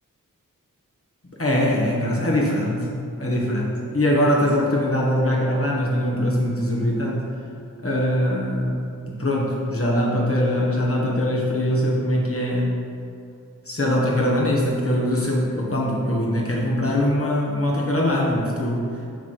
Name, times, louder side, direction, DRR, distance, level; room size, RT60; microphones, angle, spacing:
voice 1, 1.4-2.9 3.2-7.3 7.8-12.8 13.7-18.9, left 1 dB, 45° left, -4 dB, 1.6 m, -22 dB
7.1 x 3.5 x 6.1 m, 2.5 s
wide cardioid pair, 45°, 33 cm